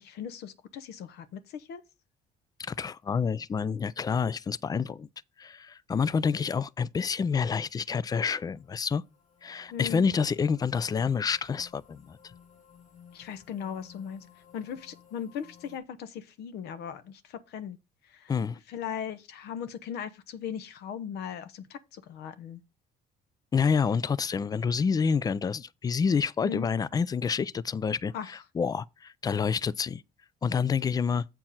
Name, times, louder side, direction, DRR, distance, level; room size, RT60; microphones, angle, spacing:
voice 1, 0.0-1.8 9.7-10.1 13.1-14.2 14.5-17.8 18.0-18.3 18.7-22.6 26.4-26.7 28.1-28.3, left 8 dB, 75° left, 1.0 m, -38 dB
voice 2, 2.6-5.1 5.4-9.0 9.4-12.3 18.3-18.6 23.5-30.0 30.4-31.2, left 6 dB, 20° left, 0.3 m, -28 dB
sound 1, 7.3-15.8, left 8 dB, 45° left, 1.8 m, -57 dB
7.6 x 4.5 x 5.6 m
cardioid pair, 110°, 17 cm